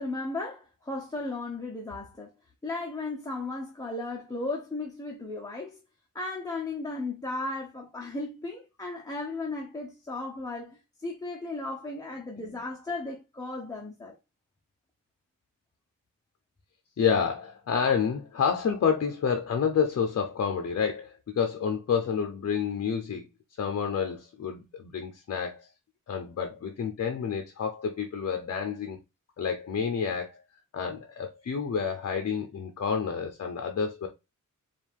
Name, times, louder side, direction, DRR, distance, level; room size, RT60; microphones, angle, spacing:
voice 1, 0.0-2.3 2.6-5.8 6.1-14.1, left 2 dB, 10° left, 0.7 m, -35 dB
voice 2, 17.0-23.2 23.6-25.7 26.1-29.0 29.4-30.4 30.7-34.1, left 6 dB, 50° left, 0.6 m, -29 dB
4.6 x 2.4 x 3.4 m
wide cardioid pair, 155°, 32 cm